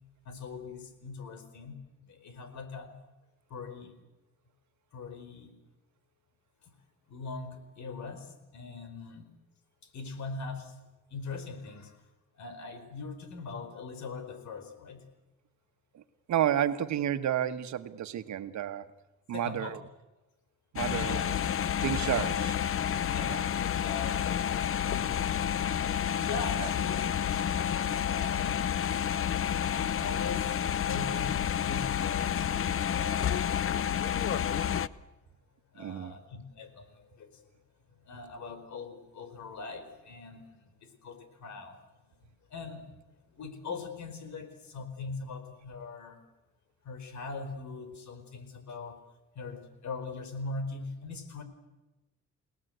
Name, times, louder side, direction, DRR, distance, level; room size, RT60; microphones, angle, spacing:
voice 1, 0.2-1.8 2.1-2.9 3.5-4.0 4.9-5.6 6.6-6.7 7.1-9.3 9.8-10.7 11.1-12.0 12.4-15.0 19.3-19.8 20.9-21.3 22.0-22.5 23.0-24.4 24.9-25.8 26.2-28.6 29.3-34.9 35.7-37.4 38.0-41.8 42.5-42.9 43.3-46.2 46.8-49.0 49.3-51.4, left 4 dB, 70° left, 9 dB, 4.6 m, -42 dB
voice 2, 16.3-18.9 19.3-19.8 20.7-21.2 21.8-22.5 23.3-23.4 26.6-26.7 35.8-36.1, right 10 dB, 70° right, 10 dB, 1.4 m, -31 dB
sound 1, 20.8-34.9, left 9 dB, 45° left, 0.8 m, -30 dB
29.0 x 18.5 x 8.1 m, 1.1 s
cardioid pair, 90°, 30 cm